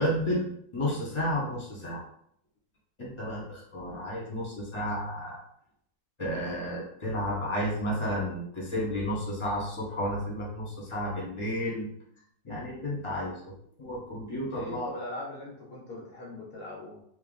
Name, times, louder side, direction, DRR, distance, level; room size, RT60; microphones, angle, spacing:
voice 1, 0.0-2.0 3.0-5.4 6.2-11.9 12.4-13.5 13.8-14.9, equal, 20° left, -4 dB, 1.0 m, -32 dB
voice 2, 14.5-17.0, left 2 dB, 60° left, -4 dB, 0.6 m, -40 dB
3.1 x 3.0 x 3.9 m, 0.68 s
omnidirectional pair, 2.1 m